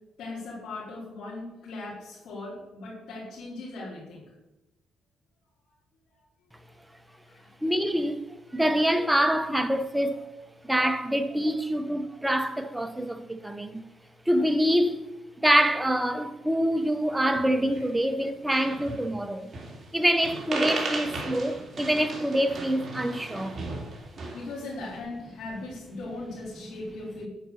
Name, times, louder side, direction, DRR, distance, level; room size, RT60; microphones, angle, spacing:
voice 1, 0.2-4.2 7.2-7.5 24.3-27.3, left 2 dB, 75° left, 4.5 m, -38 dB
voice 2, 7.6-8.2 8.5-10.3 10.6-13.8 14.3-15.0 15.4-19.5 19.9-23.6, equal, 5° right, 1.0 m, -25 dB
sound 1, 17.3-17.9 18.2-18.3 18.5-19.1 19.5-19.9 20.2-24.6, right 2 dB, 40° right, 2.9 m, -35 dB
9.8 x 5.5 x 8.2 m
cardioid pair, 90°, 0 cm